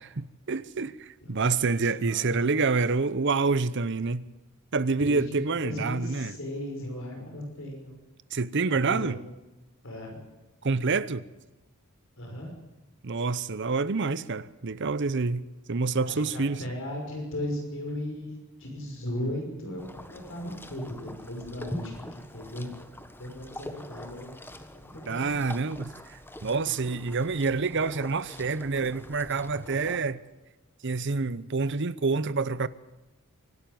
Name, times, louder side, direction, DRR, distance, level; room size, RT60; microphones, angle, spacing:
voice 1, 0.0-4.3 4.7-6.3 8.3-9.2 10.6-11.2 13.0-16.6 25.1-30.2 30.8-32.7, right 4 dB, 55° right, 0.8 m, -27 dB
voice 2, 1.2-2.6 5.0-8.0 8.9-9.2 9.8-10.2 10.6-10.8 12.2-12.5 16.0-22.7 23.2-24.5 24.7-25.4, left 1 dB, 65° left, 5.8 m, -37 dB
sound 1, 19.8-30.0, left 1 dB, 10° left, 1.3 m, -43 dB
24.5 x 12.0 x 9.3 m
head